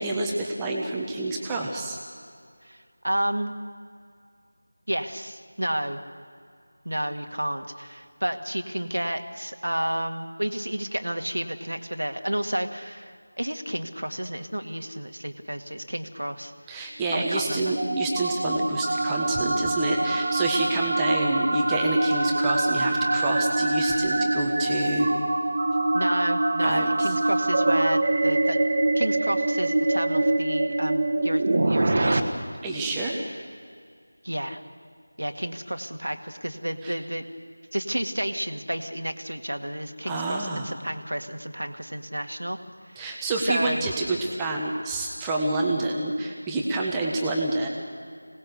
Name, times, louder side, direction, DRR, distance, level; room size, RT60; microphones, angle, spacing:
voice 1, 0.0-2.0 16.7-25.1 26.6-27.1 32.6-33.3 36.8-36.9 40.1-40.7 43.0-47.7, right 2 dB, 10° right, -2 dB, 1.4 m, -28 dB
voice 2, 2.6-3.5 4.9-6.0 6.9-16.5 17.1-17.7 25.9-28.6 28.9-32.5 34.2-34.6 35.2-37.2 37.7-42.6 42.9-43.1 43.5-43.9, right 1 dB, 85° right, 6 dB, 2.0 m, -31 dB
sound 1, 17.1-32.2, right 2 dB, 40° right, 1.7 m, -24 dB
26.0 x 19.0 x 6.7 m, 2.2 s
figure-of-eight pair, 170°, 0 cm